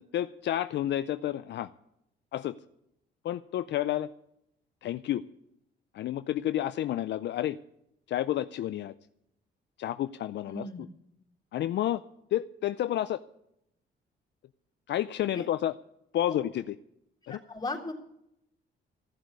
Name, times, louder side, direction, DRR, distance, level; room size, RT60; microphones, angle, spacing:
voice 1, 0.0-1.7 2.3-2.6 3.2-4.1 4.8-5.2 5.9-7.6 8.1-8.9 9.8-10.7 11.5-12.0 12.3-13.2 14.9-15.7 16.1-16.7 17.3-17.4, left 12 dB, 65° left, 12 dB, 0.5 m, -30 dB
voice 2, 10.5-10.8 15.3-15.5 16.3-16.4 17.2-17.9, left 2 dB, 20° left, -2 dB, 3.3 m, -37 dB
14.5 x 7.4 x 9.5 m, 0.79 s
cardioid pair, 90°, 20 cm